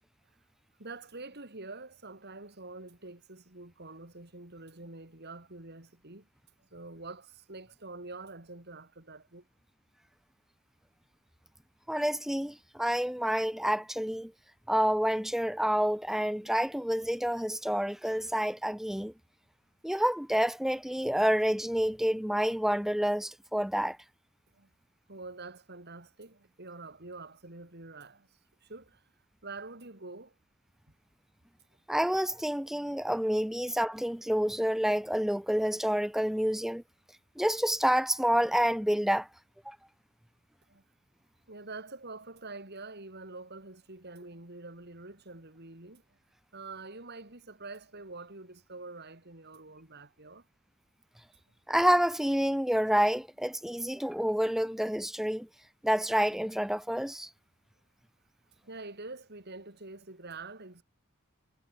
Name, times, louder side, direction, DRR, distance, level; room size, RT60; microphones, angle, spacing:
voice 1, 0.8-6.3 6.6-9.4 24.5-24.7 25.1-29.0 29.4-30.3 40.7-40.8 41.5-46.2 46.5-50.5 58.6-60.8, right 3 dB, 45° right, 3.2 m, -46 dB
voice 2, 11.9-14.3 14.7-19.1 19.8-24.0 31.9-36.8 37.4-39.3 39.7-39.8 51.7-55.5 55.8-57.3, equal, ahead, 0.6 m, -28 dB
head